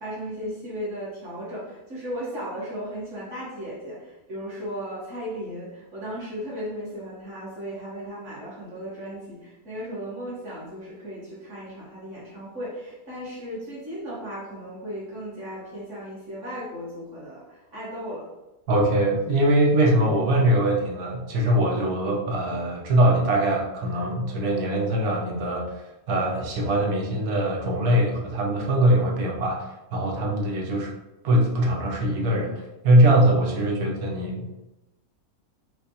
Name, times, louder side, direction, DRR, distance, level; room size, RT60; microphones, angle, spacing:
voice 1, 0.0-18.3, equal, 55° right, -7 dB, 1.5 m, -36 dB
voice 2, 18.7-29.6 29.9-30.9 31.2-32.5 32.8-34.6, right 1 dB, 85° right, 0 dB, 1.2 m, -22 dB
4.8 x 2.1 x 2.8 m, 0.99 s
omnidirectional pair, 1.6 m